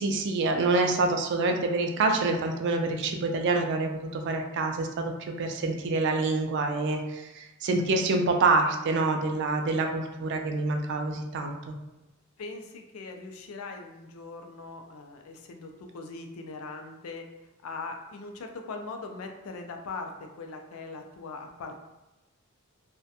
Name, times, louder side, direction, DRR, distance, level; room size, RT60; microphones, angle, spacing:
voice 1, 0.0-11.7, right 3 dB, 55° right, 4 dB, 0.3 m, -27 dB
voice 2, 12.4-17.3 17.6-21.8, left 3 dB, 85° left, 4 dB, 0.4 m, -40 dB
2.3 x 2.1 x 2.7 m, 0.99 s
head